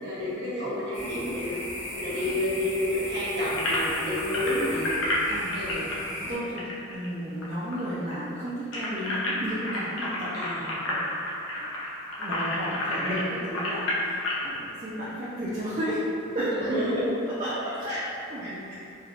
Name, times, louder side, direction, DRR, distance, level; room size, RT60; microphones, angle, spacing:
voice 1, 0.0-1.6 1.9-4.9 5.5-5.8 10.3-10.8 16.6-17.3 17.9-18.0 18.4-18.8, left 1 dB, 55° right, -9 dB, 1.0 m, -30 dB
sound 1, 0.9-6.4, left 1 dB, 35° left, 0.8 m, -36 dB
sound 2, 3.5-7.5 7.7-7.8 8.1-14.5, left 1 dB, 70° left, 0.5 m, -30 dB
voice 2, 5.3-6.0 6.3-11.0 12.2-16.1 16.3-16.7 17.3-18.8, equal, 35° right, -10 dB, 0.4 m, -33 dB
3.6 x 2.3 x 2.3 m, 2.7 s
head